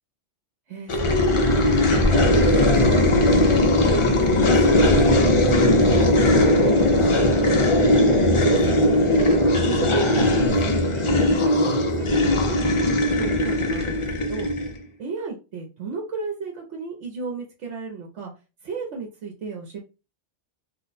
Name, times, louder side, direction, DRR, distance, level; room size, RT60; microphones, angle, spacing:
voice 1, 0.7-4.2 4.6-5.3 5.8-8.1 8.4-9.0 9.4-14.0 14.3-14.5 15.0-18.3 18.6-19.8, right 5 dB, 80° right, 1 dB, 1.0 m, -34 dB
sound 1, 0.9-14.8, left 1 dB, 45° left, 0.4 m, -19 dB
2.5 x 2.1 x 3.8 m, 0.31 s
omnidirectional pair, 1.2 m